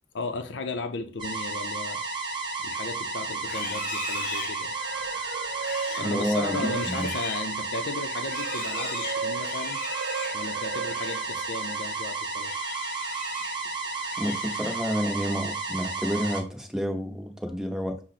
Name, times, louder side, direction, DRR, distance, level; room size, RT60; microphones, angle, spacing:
voice 1, 0.1-2.0 2.6-4.8 5.9-9.8 10.3-12.6, left 3 dB, 85° left, 0.5 m, -35 dB
sound 1, 1.2-16.4, right 3 dB, 30° right, 1.0 m, -32 dB
Livestock farm animals working animals, 3.4-11.3 11.6-11.9 12.4-13.6 13.9-15.0, left 3 dB, 55° left, 0.8 m, -39 dB
sound 2, 4.6-7.3 7.7-12.1, right 5 dB, 75° right, 0.3 m, -37 dB
voice 2, 6.0-7.1 14.2-18.0, equal, 5° right, 0.7 m, -29 dB
6.0 x 2.1 x 4.1 m
head